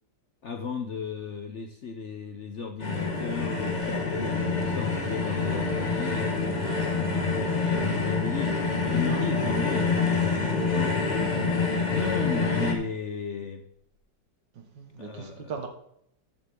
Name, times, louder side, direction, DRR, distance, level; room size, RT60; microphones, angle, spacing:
voice 1, 0.4-8.6 8.9-11.0 11.9-13.6 15.0-15.6, left 5 dB, 60° left, 6 dB, 0.8 m, -35 dB
sound 1, 2.8-12.7, left 4 dB, 25° left, 1.4 m, -27 dB
voice 2, 6.6-7.2 9.1-9.2 14.6-15.7, right 5 dB, 75° right, 5 dB, 2.1 m, -40 dB
13.0 x 7.3 x 3.7 m, 0.75 s
omnidirectional pair, 2.0 m